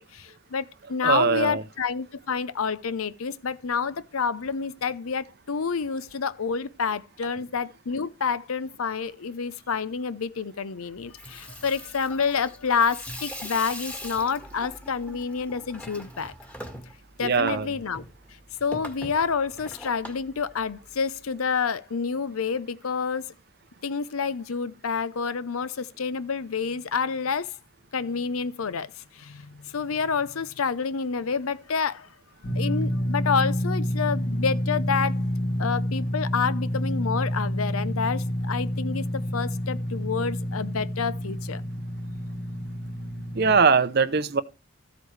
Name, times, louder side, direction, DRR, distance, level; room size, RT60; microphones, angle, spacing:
voice 1, 0.0-16.3 17.2-18.0 18.6-23.3 23.8-27.5 27.9-28.9 29.2-29.4 29.7-32.1 32.6-35.2 35.6-41.6, left 5 dB, 80° left, 0.7 m, -28 dB
voice 2, 1.0-1.6 17.2-17.7 43.3-44.4, right 5 dB, 45° right, 0.6 m, -21 dB
Water tap faucet / Sink (filling or washing), 11.0-21.2, left 1 dB, 5° left, 1.7 m, -42 dB
sound 1, 32.4-43.6, equal, 50° left, 2.6 m, -28 dB
14.0 x 8.2 x 3.3 m
head